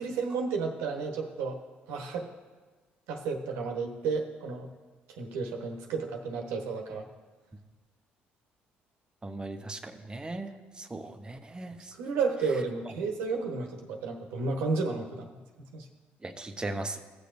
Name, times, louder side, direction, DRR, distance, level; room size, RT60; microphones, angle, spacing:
voice 1, 0.0-1.6 1.9-2.3 3.1-4.7 5.2-7.0 11.9-15.3 15.7-15.9, right 4 dB, 85° right, 2 dB, 1.2 m, -32 dB
voice 2, 9.2-10.5 10.8-11.8 16.2-17.0, right 2 dB, 20° right, 7 dB, 0.9 m, -38 dB
16.5 x 6.6 x 2.6 m, 1.4 s
supercardioid pair, 75°, 4 cm